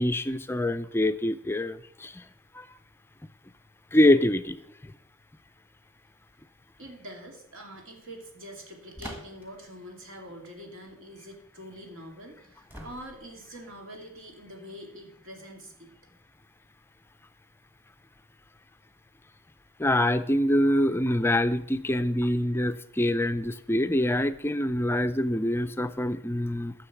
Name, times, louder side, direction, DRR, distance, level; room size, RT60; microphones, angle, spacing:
voice 1, 0.0-2.1 2.6-2.7 3.9-4.6 19.8-26.7, left 1 dB, 10° left, 11 dB, 0.4 m, -25 dB
voice 2, 6.8-15.9, equal, 70° right, 2 dB, 2.5 m, -45 dB
sound 1, 9.0-9.6 12.7-13.4, equal, 10° right, 1.6 m, -43 dB
10.0 x 6.5 x 7.1 m, 0.75 s
head